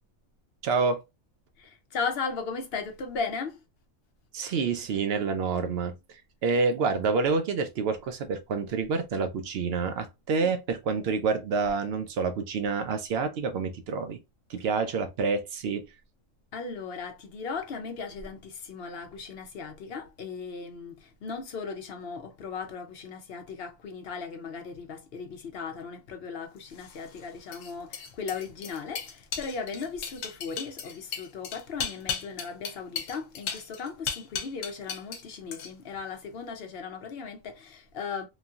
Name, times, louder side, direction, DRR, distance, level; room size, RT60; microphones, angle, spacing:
voice 1, 0.6-1.0 4.3-14.2 14.5-15.9, right 4 dB, 60° right, 0.7 m, -28 dB
voice 2, 1.6-3.6 10.4-10.5 14.6-14.7 16.5-38.2, left 5 dB, 60° left, 0.7 m, -37 dB
sound 1, 26.7-35.2 35.5-36.0, left 7 dB, 75° left, 1.0 m, -36 dB
3.0 x 2.7 x 2.4 m
omnidirectional pair, 1.3 m